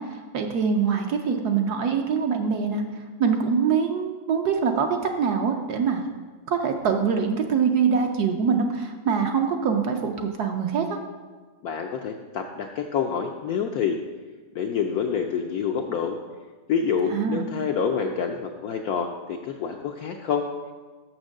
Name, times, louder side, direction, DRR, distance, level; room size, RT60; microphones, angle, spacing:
voice 1, 0.0-6.0 6.5-11.0 17.1-17.5, right 6 dB, 65° right, 4 dB, 1.1 m, -24 dB
voice 2, 11.6-14.0 14.5-16.2 16.7-20.5, left 6 dB, 75° left, 3 dB, 0.9 m, -27 dB
6.5 x 6.2 x 6.4 m, 1.4 s
omnidirectional pair, 2.1 m